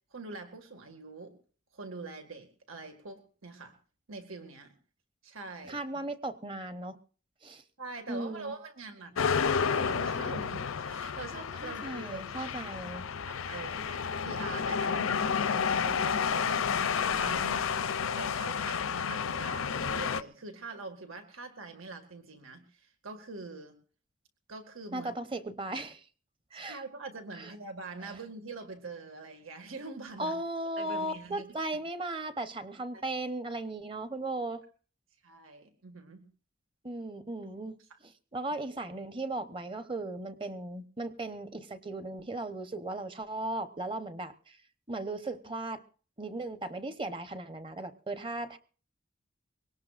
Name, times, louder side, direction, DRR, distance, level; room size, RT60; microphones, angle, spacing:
voice 1, 0.1-1.4 1.7-3.8 4.1-4.7 5.2-5.8 7.8-12.4 13.2-23.8 24.5-25.1 26.7-30.4 30.8-31.4 35.2-36.3 37.9-38.0, right 3 dB, 90° right, 6 dB, 2.0 m, -44 dB
voice 2, 5.7-7.0 7.4-7.6 8.1-8.5 11.6-13.0 24.9-26.1 26.5-26.8 27.4-27.5 28.0-28.2 30.2-34.6 36.8-37.7 38.0-44.6 44.9-45.8 46.2-48.6, right 2 dB, 25° right, 10 dB, 0.9 m, -37 dB
sound 1, 9.2-20.2, left 6 dB, 90° left, 0.6 m, -31 dB
22.5 x 18.0 x 2.5 m, 0.42 s
head